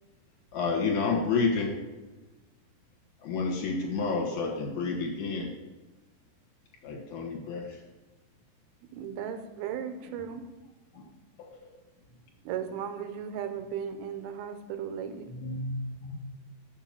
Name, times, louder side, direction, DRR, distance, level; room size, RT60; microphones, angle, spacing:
voice 1, 0.5-1.7 3.2-5.5 6.8-7.8 11.4-11.5, left 4 dB, 55° left, -1 dB, 2.5 m, -29 dB
voice 2, 8.9-10.5 12.4-15.3, right 8 dB, 80° right, 9 dB, 2.6 m, -36 dB
voice 3, 9.9-10.4 10.9-11.1 12.1-12.2 15.3-16.1, equal, 85° left, -2 dB, 1.2 m, -38 dB
7.3 x 6.0 x 7.3 m, 1.1 s
omnidirectional pair, 4.4 m